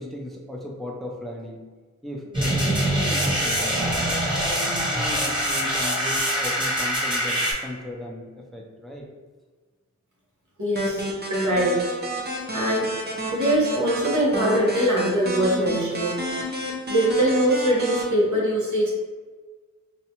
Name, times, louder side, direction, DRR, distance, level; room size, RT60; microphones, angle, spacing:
voice 1, 0.0-1.6 2.0-9.1, left 1 dB, ahead, -1 dB, 0.5 m, -36 dB
sound 1, 2.3-7.5, equal, 15° right, 1.0 m, -24 dB
voice 2, 10.6-11.8 12.5-12.9 13.3-16.2 16.9-18.9, right 1 dB, 75° right, -5 dB, 1.2 m, -22 dB
sound 2, 10.8-18.0, equal, 35° right, 0.7 m, -30 dB
4.2 x 2.3 x 2.9 m, 1.4 s
wide cardioid pair, 105°, 30 cm